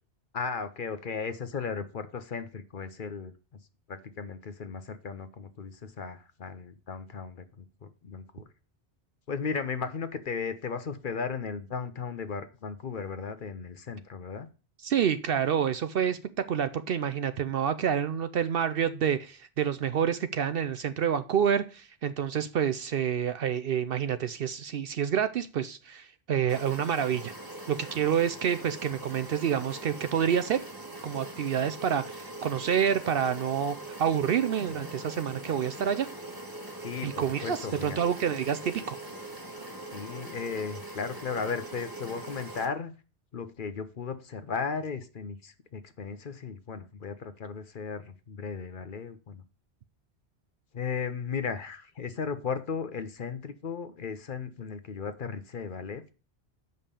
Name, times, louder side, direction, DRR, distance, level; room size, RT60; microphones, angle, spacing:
voice 1, 0.3-3.3 3.9-7.6 8.0-8.5 9.3-14.5 36.8-38.0 39.9-42.9 43.3-49.4 50.7-56.0, left 5 dB, 50° left, 10 dB, 0.9 m, -36 dB
voice 2, 14.8-27.3 27.7-30.6 31.0-36.1 37.0-39.0, right 8 dB, 65° right, 12 dB, 0.7 m, -28 dB
sound 1, 26.5-42.7, right 1 dB, 20° right, 1.2 m, -42 dB
7.2 x 5.4 x 6.7 m, 0.36 s
omnidirectional pair, 1.1 m